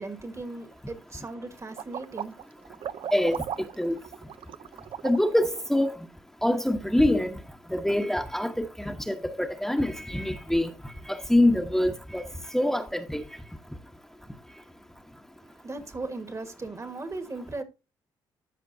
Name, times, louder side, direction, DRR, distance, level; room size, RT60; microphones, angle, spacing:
voice 1, 0.0-2.4 2.8-3.1 15.6-17.6, right 3 dB, 30° right, 1.5 m, -38 dB
sound 1, 1.7-5.6, right 9 dB, 65° right, 0.5 m, -37 dB
voice 2, 5.0-6.0 6.4-7.4 7.7-10.7 11.1-12.3 12.5-13.2, left 1 dB, 5° left, 1.0 m, -25 dB
13.5 x 5.1 x 2.6 m
supercardioid pair, 65°, 10 cm